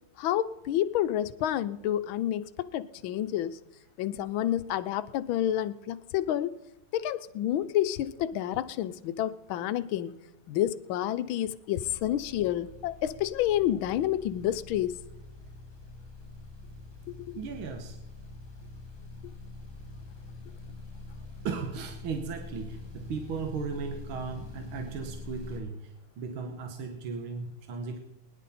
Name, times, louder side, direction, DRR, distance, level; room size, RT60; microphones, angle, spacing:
voice 1, 0.2-3.6 4.0-6.5 6.9-10.1 10.5-15.0 17.3-17.4, left 12 dB, 75° left, 13 dB, 1.4 m, -29 dB
sound 1, 11.7-25.6, left 2 dB, 15° right, 1.5 m, -45 dB
voice 2, 17.4-18.0 21.4-28.0, right 5 dB, 80° right, 4 dB, 2.0 m, -36 dB
20.5 x 10.5 x 4.2 m, 0.95 s
omnidirectional pair, 2.3 m